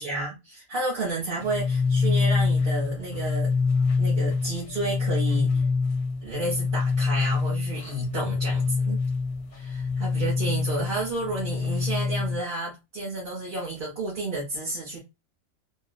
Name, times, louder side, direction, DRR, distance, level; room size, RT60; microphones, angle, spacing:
voice 1, 0.0-3.6 4.0-5.6 6.2-9.0 9.5-15.0, right 2 dB, 40° right, -7 dB, 1.2 m, -31 dB
sound 1, 1.4-12.4, left 4 dB, 60° left, 0.8 m, -25 dB
3.0 x 2.3 x 2.2 m, 0.23 s
omnidirectional pair, 1.4 m